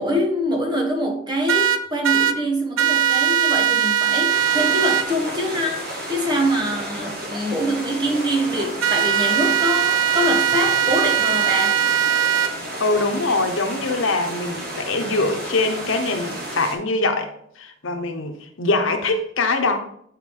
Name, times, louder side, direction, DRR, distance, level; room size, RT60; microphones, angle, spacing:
voice 1, 0.0-11.9, equal, 20° right, 2 dB, 1.2 m, -24 dB
sound 1, 1.5-2.3 2.8-5.0 8.8-12.5, right 10 dB, 80° right, 0.5 m, -20 dB
sound 2, 4.3-16.8, right 1 dB, 50° right, 1.5 m, -32 dB
voice 2, 12.8-19.8, left 3 dB, 80° left, 5 dB, 0.9 m, -23 dB
8.4 x 4.6 x 3.8 m, 0.69 s
head